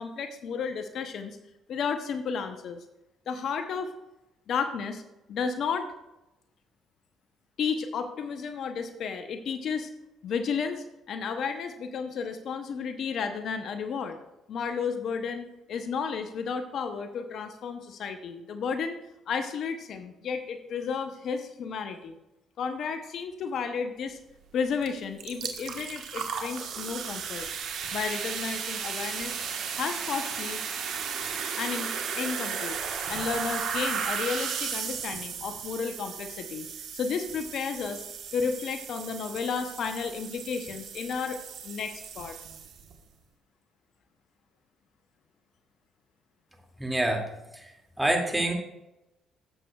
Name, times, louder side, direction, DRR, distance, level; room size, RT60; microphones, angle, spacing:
voice 1, 0.0-1.4 1.7-2.8 3.3-3.9 4.5-5.0 5.3-5.9 7.6-9.9 10.2-14.2 14.5-19.0 19.3-22.2 22.6-24.2 24.5-27.5 27.9-29.4 29.7-30.6 31.6-32.8 33.1-36.7 36.9-38.0 38.3-41.4 41.6-42.4, left 6 dB, 65° left, 7 dB, 0.8 m, -32 dB
sound 1, 24.8-24.9 25.2-42.9, right 6 dB, 70° right, 1.3 m, -35 dB
voice 2, 46.8-47.2 48.0-48.5, right 1 dB, 10° right, 1 dB, 2.3 m, -25 dB
12.5 x 7.6 x 2.3 m, 0.92 s
hypercardioid pair, 60°, 0 cm